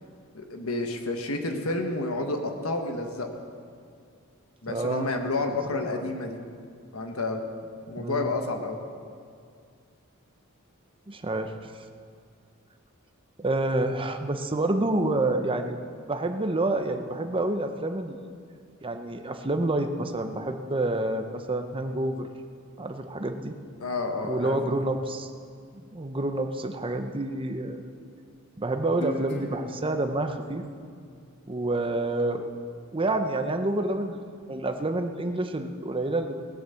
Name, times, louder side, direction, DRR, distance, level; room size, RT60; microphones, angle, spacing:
voice 1, 0.3-3.3 4.6-6.4 6.9-7.4 7.9-8.8 23.8-24.8, left 2 dB, 70° left, 4 dB, 1.4 m, -30 dB
voice 2, 4.7-5.1 5.9-6.0 8.0-8.3 11.1-11.5 13.4-15.8 16.1-18.2 18.8-22.3 22.8-23.5 24.3-25.3 25.7-27.8 28.6-30.6 31.5-32.5 32.9-34.2 34.5-36.4, right 2 dB, 25° right, 6 dB, 0.8 m, -28 dB
Guitar, 29.0-32.2, equal, 55° left, 1.8 m, -41 dB
18.5 x 8.1 x 6.9 m, 2.2 s
head